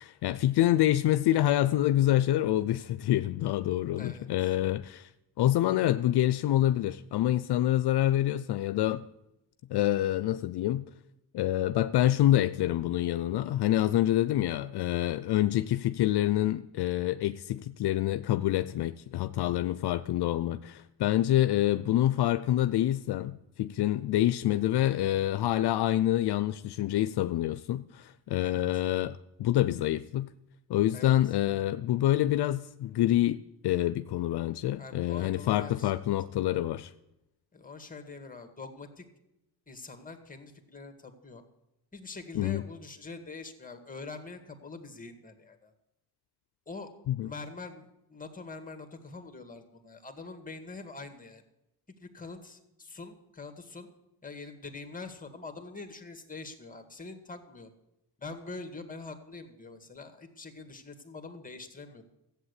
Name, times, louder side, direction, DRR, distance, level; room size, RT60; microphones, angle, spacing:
voice 1, 0.0-5.1 5.4-9.0 9.7-10.8 11.3-30.3 30.7-36.9 42.4-42.6 47.1-47.3, left 13 dB, 75° left, 0.6 m, -27 dB
voice 2, 4.0-4.5 28.4-28.6 30.9-31.3 34.8-35.9 37.5-39.1 39.7-41.4 41.9-45.7 46.7-46.9 47.2-51.4 52.0-53.9 54.2-57.7 58.2-62.0, left 3 dB, 20° left, 2.1 m, -44 dB
14.0 x 8.1 x 8.2 m
cardioid pair, 80°, 40 cm